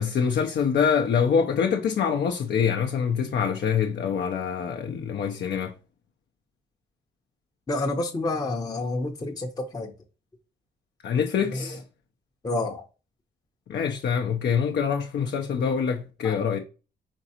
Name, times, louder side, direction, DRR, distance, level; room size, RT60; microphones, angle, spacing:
voice 1, 0.0-5.7 11.0-11.8 13.7-16.6, left 7 dB, 60° left, 0.6 m, -25 dB
voice 2, 7.7-9.9 11.5-11.8 12.4-12.8 15.5-15.7 16.2-16.4, left 2 dB, 20° left, 0.7 m, -29 dB
4.5 x 3.8 x 2.8 m
cardioid pair, 90°, 20 cm